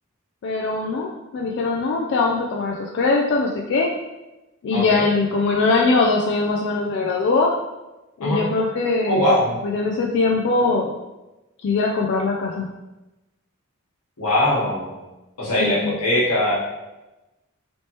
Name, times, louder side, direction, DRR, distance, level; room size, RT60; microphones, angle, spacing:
voice 1, 0.4-3.9 4.6-7.5 8.2-9.4 9.6-10.9 11.6-12.7 15.6-15.9, left 3 dB, 55° left, -1 dB, 0.3 m, -21 dB
voice 2, 9.1-9.5 14.2-14.9 15.4-16.6, left 1 dB, 90° left, -6 dB, 1.2 m, -21 dB
3.2 x 2.8 x 3.0 m, 1.0 s
head